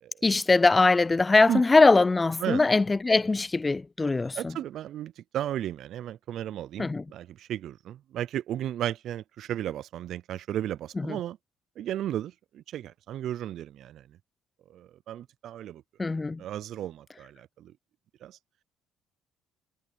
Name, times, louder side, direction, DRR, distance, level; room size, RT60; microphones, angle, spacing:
voice 1, 0.2-4.6 6.8-7.1 11.0-11.2 16.0-16.4, left 3 dB, 25° left, 0.3 m, -22 dB
voice 2, 4.4-11.4 11.8-14.0 14.7-15.8 16.4-17.7 18.2-18.4, right 11 dB, 70° right, 0.4 m, -34 dB
supercardioid pair, 70°, 0 cm